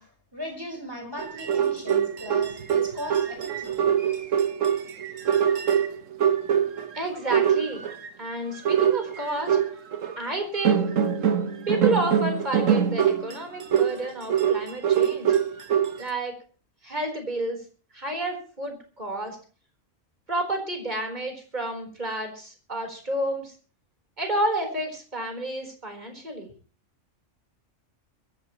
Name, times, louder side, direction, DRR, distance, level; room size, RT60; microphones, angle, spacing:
voice 1, 0.0-3.8, left 1 dB, 15° right, 3 dB, 4.9 m, -38 dB
sound 1, 1.2-7.0 7.3-8.1 8.6-10.2 10.6-16.0, right 8 dB, 80° right, 1.6 m, -23 dB
voice 2, 6.9-7.8 8.2-9.6 10.2-10.9 11.7-15.4 16.0-16.4 16.8-17.6 17.9-19.4 20.3-23.5 24.2-26.5, right 1 dB, 35° right, 3 dB, 4.4 m, -30 dB
23.0 x 14.5 x 3.1 m, 0.39 s
omnidirectional pair, 1.3 m